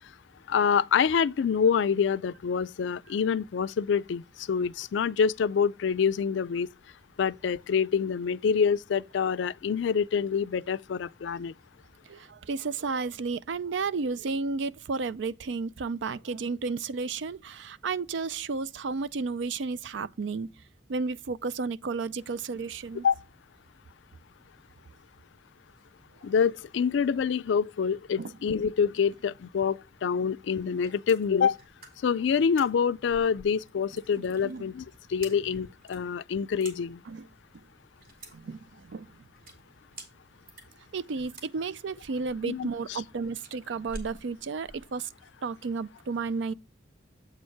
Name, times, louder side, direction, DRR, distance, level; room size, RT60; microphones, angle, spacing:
voice 1, 0.5-6.7 7.2-11.5 23.0-23.2 26.2-31.6 32.0-37.0 42.4-43.0, left 6 dB, 75° left, 0.3 m, -26 dB
voice 2, 12.1-20.5 20.9-23.1 28.2-28.3 34.1-34.6 37.1-37.3 38.3-39.1 40.9-45.1 45.4-46.5, right 4 dB, 75° right, 0.4 m, -32 dB
sound 1, 30.6-44.9, right 1 dB, 45° right, 2.5 m, -49 dB
8.0 x 4.4 x 4.6 m
head